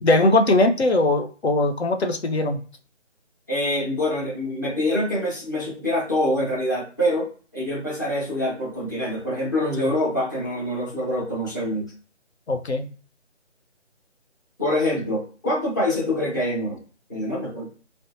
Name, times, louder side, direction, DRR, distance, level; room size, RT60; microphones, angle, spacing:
voice 1, 0.0-2.6 9.8-9.9 12.5-12.9, left 2 dB, 60° left, 5 dB, 0.6 m, -20 dB
voice 2, 3.5-11.9 14.6-16.8 17.1-17.7, left 1 dB, 15° left, -6 dB, 0.6 m, -25 dB
2.6 x 2.1 x 2.7 m, 0.38 s
figure-of-eight pair, 155°, 36 cm